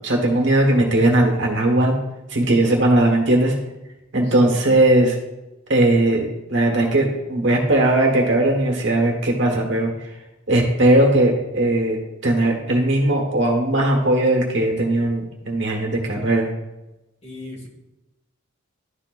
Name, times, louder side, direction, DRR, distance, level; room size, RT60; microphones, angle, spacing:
voice 1, 0.0-1.9 2.3-3.5 4.1-5.1 5.7-9.9 10.5-12.0 12.2-16.5, right 1 dB, 55° right, 0 dB, 1.4 m, -18 dB
voice 2, 4.2-4.8 17.2-17.7, left 1 dB, 30° left, -1 dB, 1.4 m, -37 dB
11.5 x 4.3 x 2.5 m, 0.97 s
head